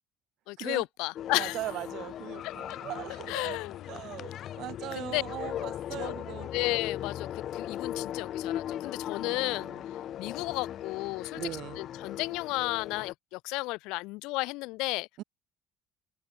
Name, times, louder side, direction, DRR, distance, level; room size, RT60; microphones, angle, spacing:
voice 1, 0.5-1.6 2.4-2.5 3.3-3.8 4.9-5.2 6.0-6.1 6.5-9.7 10.2-11.4 11.8-15.2, left 23 dB, 90° left, 0.9 m, -33 dB
sound 1, 1.1-13.1, left 11 dB, 45° left, 6.0 m, -38 dB
voice 2, 1.3-3.6 3.9-6.5 9.3-9.8 11.3-11.8 15.2-15.3, right 15 dB, 60° right, 6.0 m, -39 dB
cardioid pair, 160°, 0 cm